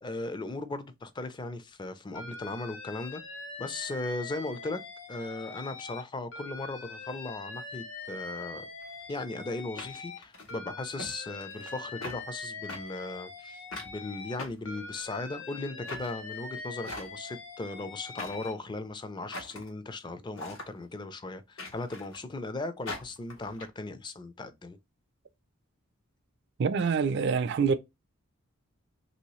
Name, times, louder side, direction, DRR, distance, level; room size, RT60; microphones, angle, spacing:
voice 1, 0.0-3.2 3.6-4.8 5.1-8.6 9.1-24.8, left 2 dB, 20° left, 0.4 m, -37 dB
Alarm, 2.1-6.0 6.3-10.2 10.5-14.4 14.6-18.5, left 3 dB, 65° left, 0.7 m, -43 dB
sound 1, 8.8-8.9 9.8-10.6 11.0-11.1 11.4-11.8 12.0-12.2 12.7-12.8 13.7-13.9 14.4-15.3 15.8-16.1 16.8-17.3 18.2-18.5 19.3-19.7 20.4-20.7 21.6-22.2 22.9-23.7, left 2 dB, 85° left, 1.2 m, -41 dB
voice 2, 26.6-27.8, right 5 dB, 55° right, 0.4 m, -26 dB
3.0 x 2.7 x 3.0 m
head